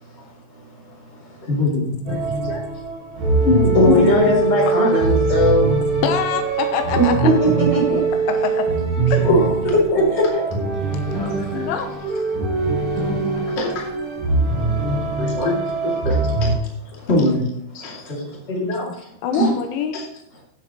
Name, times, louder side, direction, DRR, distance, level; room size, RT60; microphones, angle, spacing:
voice 1, 1.4-2.6 3.4-4.1 7.0-7.1 9.2-9.5 11.0-11.6 13.4-13.9 15.2-16.5 17.1-17.4 17.7-18.9 19.9-20.1, left 2 dB, 50° left, -2 dB, 0.7 m, -24 dB
sound 1, 2.1-16.6, right 4 dB, 45° right, 4.4 m, -22 dB
voice 2, 3.7-5.7 6.9-8.0 9.3-9.4 9.6-10.4 19.3-19.5, left 1 dB, 15° left, -3 dB, 3.2 m, -18 dB
voice 3, 6.0-7.3 8.3-8.7 9.1-9.3 11.2-12.3 19.2-20.0, left 7 dB, 80° left, 6 dB, 3.3 m, -25 dB
15.5 x 7.5 x 3.0 m, 0.77 s
omnidirectional pair, 5.7 m